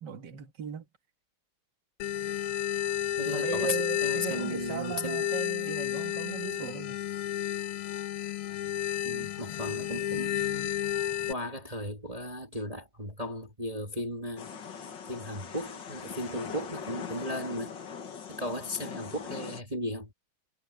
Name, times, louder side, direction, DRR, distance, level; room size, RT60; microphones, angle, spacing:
voice 1, 0.0-0.9 3.3-7.0, right 8 dB, 55° right, 2.3 m, -37 dB
sound 1, 2.0-11.3, left 11 dB, 90° left, 1.8 m, -32 dB
voice 2, 3.2-5.3 9.0-10.8 11.2-14.5 15.1-17.8 18.3-20.1, equal, 15° right, 1.9 m, -36 dB
sound 2, 14.4-19.6, left 6 dB, 55° left, 2.2 m, -41 dB
omnidirectional pair, 2.4 m